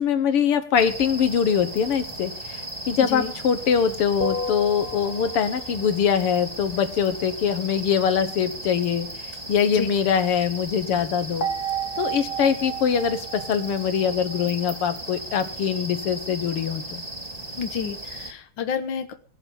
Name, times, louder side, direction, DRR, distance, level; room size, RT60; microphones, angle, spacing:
voice 1, 0.0-11.5 12.0-17.0, left 7 dB, 85° left, 10 dB, 2.3 m, -23 dB
sound 1, 0.7-18.3, right 1 dB, 15° right, 2.3 m, -37 dB
voice 2, 3.0-3.3 9.7-9.9 17.6-19.1, left 7 dB, 65° left, 8 dB, 1.9 m, -30 dB
sound 2, 4.2-5.7 11.4-14.8, right 3 dB, 45° left, 2.4 m, -32 dB
17.5 x 11.0 x 5.5 m, 0.42 s
omnidirectional pair, 2.4 m